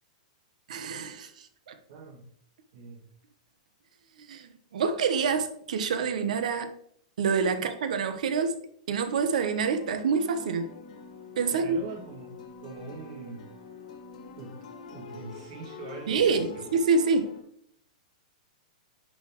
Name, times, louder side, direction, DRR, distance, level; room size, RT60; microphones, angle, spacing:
voice 1, 0.7-1.7 4.2-6.7 7.2-8.6 8.9-10.7 11.4-11.8 16.1-17.3, right 5 dB, 70° right, 9 dB, 1.0 m, -27 dB
voice 2, 1.9-2.3 2.7-3.1 11.5-13.5 14.3-16.7, right 4 dB, 55° right, 0 dB, 2.4 m, -43 dB
sound 1, 9.3-17.4, left 4 dB, 65° left, 1.7 m, -45 dB
10.0 x 3.9 x 3.1 m, 0.68 s
supercardioid pair, 170°, 4 cm